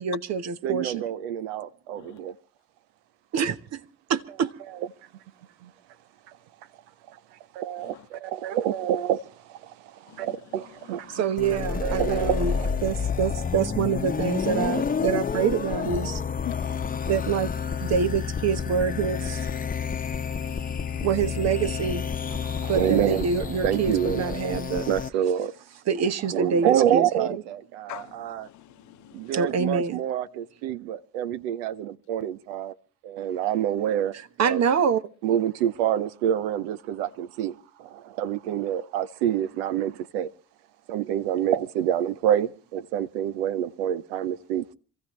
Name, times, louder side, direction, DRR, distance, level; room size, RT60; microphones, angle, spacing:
voice 1, 0.0-1.0 3.3-3.8 4.1-4.5 11.1-16.2 17.1-17.5 17.8-19.5 21.0-22.0 22.7-24.9 25.9-27.4 29.3-30.0 34.4-35.0, right 6 dB, 60° right, 1.1 m, -26 dB
voice 2, 0.6-2.3 5.6-5.7 7.5-11.2 11.8-12.7 22.4-23.3 23.6-25.5 26.3-28.5 29.1-32.7 33.0-34.1 34.4-34.6 35.2-40.3 40.9-44.7, right 10 dB, 85° right, 0.7 m, -27 dB
sound 1, 11.4-25.1, left 6 dB, 30° left, 0.9 m, -29 dB
voice 3, 20.5-21.1 27.9-29.3, left 15 dB, 70° left, 0.9 m, -43 dB
27.0 x 14.5 x 3.1 m
hypercardioid pair, 55°, 30 cm